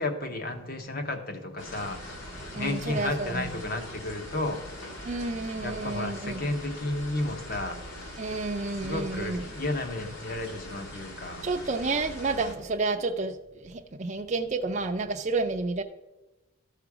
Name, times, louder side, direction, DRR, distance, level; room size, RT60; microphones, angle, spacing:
voice 1, 0.0-2.2 2.5-5.1 5.6-7.8 8.8-11.4, left 2 dB, 45° left, 0.9 m, -33 dB
sound 1, 1.6-12.5, equal, 60° left, 2.0 m, -42 dB
voice 2, 2.5-3.5 5.0-6.4 8.2-9.4 11.4-15.8, right 3 dB, 30° right, 0.4 m, -30 dB
13.5 x 5.0 x 4.8 m
head